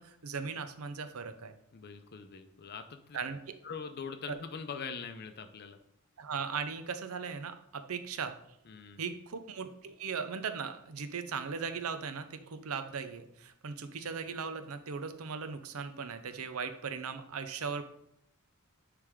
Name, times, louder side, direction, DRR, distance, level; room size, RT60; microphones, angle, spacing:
voice 1, 0.0-1.5 3.1-3.6 4.3-4.4 6.2-8.3 9.0-17.8, right 5 dB, 85° right, 10 dB, 0.6 m, -38 dB
voice 2, 1.7-3.2 3.6-5.8 8.7-9.0, left 5 dB, 50° left, 8 dB, 0.5 m, -43 dB
9.8 x 3.4 x 3.5 m, 0.74 s
head